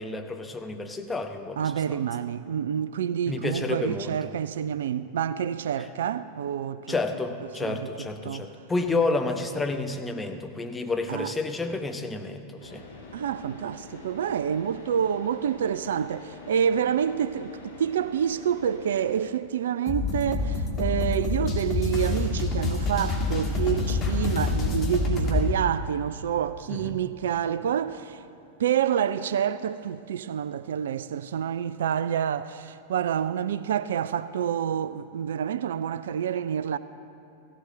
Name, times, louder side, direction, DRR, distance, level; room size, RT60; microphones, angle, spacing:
voice 1, 0.0-1.6 1.9-2.0 3.3-4.2 6.9-12.8 26.7-27.0, left 3 dB, 10° left, 0.9 m, -30 dB
voice 2, 1.6-7.0 7.6-7.9 8.2-8.5 11.1-11.3 13.1-28.2 28.6-36.8, right 9 dB, 60° right, 0.3 m, -28 dB
Car / Idling, 12.6-19.2, left 3 dB, 70° left, 2.2 m, -45 dB
sound 1, 19.9-25.5, left 3 dB, 30° left, 2.4 m, -27 dB
16.0 x 16.0 x 4.0 m
figure-of-eight pair, 90°, 0 cm